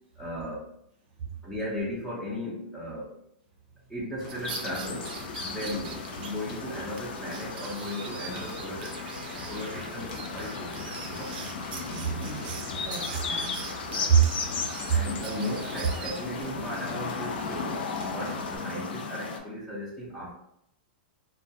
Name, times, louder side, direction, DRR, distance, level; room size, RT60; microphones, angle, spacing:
voice 1, 0.2-0.7 1.4-3.1 3.9-5.1 5.4-11.3 14.9-20.3, left 1 dB, 5° left, -8 dB, 0.5 m, -36 dB
sound 1, 4.2-18.6, left 2 dB, 50° left, 0.7 m, -43 dB
sound 2, 4.3-6.3 6.6-6.7 7.0-7.1 7.3-16.4, right 6 dB, 65° right, 0.4 m, -42 dB
sound 3, 4.4-19.4, left 5 dB, 85° left, 0.4 m, -36 dB
voice 2, 11.9-14.5, right 7 dB, 30° right, -2 dB, 0.7 m, -28 dB
2.3 x 2.2 x 2.7 m, 0.76 s
supercardioid pair, 155°, 5 cm